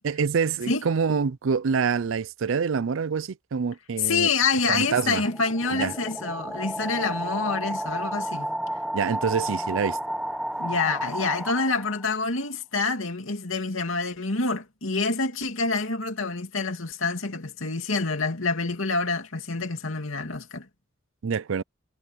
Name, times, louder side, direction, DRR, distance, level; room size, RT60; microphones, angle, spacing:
voice 1, 0.0-4.3 4.7-5.2 5.7-5.9 8.9-10.0 21.2-21.6, right 6 dB, 65° right, 0.5 m, -26 dB
voice 2, 4.0-8.5 10.6-20.7, left 4 dB, 75° left, 2.8 m, -27 dB
sound 1, 4.3-12.1, right 1 dB, ahead, 1.0 m, -32 dB
head